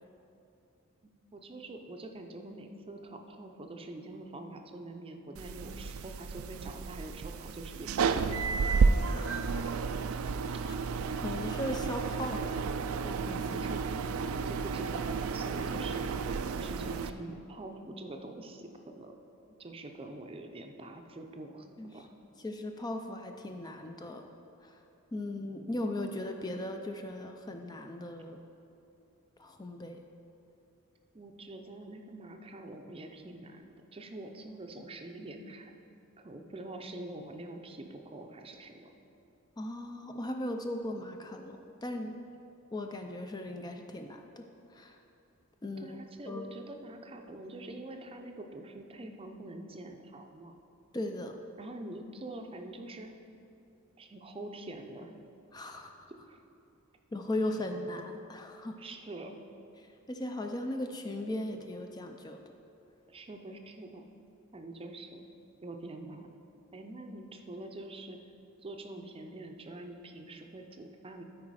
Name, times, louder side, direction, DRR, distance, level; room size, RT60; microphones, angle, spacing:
voice 1, 1.0-8.5 13.5-14.0 14.5-16.1 16.5-19.1 19.6-21.7 21.9-22.1 31.1-35.7 36.2-38.9 45.8-50.5 51.6-53.2 54.0-55.1 56.3-56.4 58.8-59.4 63.1-64.1 64.5-65.2 65.6-66.4 66.7-68.2 68.6-71.2, right 2 dB, 25° right, 4 dB, 0.6 m, -45 dB
sound 1, 5.4-17.1, right 5 dB, 80° right, 0.4 m, -32 dB
voice 2, 9.1-9.8 10.6-10.7 11.2-12.6 13.0-13.6 21.8-21.9 22.4-24.3 24.6-24.8 25.1-28.4 29.4-30.0 39.6-42.2 42.7-44.4 44.7-45.0 45.6-46.5 50.9-51.4 55.5-56.1 57.1-58.8 60.1-62.4, left 1 dB, 20° left, 4 dB, 0.4 m, -38 dB
12.5 x 4.8 x 4.8 m, 2.7 s
head